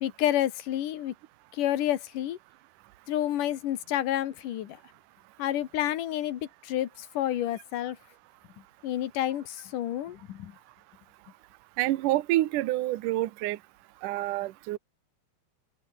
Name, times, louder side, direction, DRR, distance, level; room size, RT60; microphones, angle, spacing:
voice 1, 0.0-1.1 1.5-2.4 3.1-4.8 5.4-8.0 8.8-10.5, left 12 dB, 60° left, 2.5 m, -29 dB
voice 2, 11.8-13.6 14.0-14.8, right 16 dB, 85° right, 1.8 m, -27 dB
open air
omnidirectional pair, 5.3 m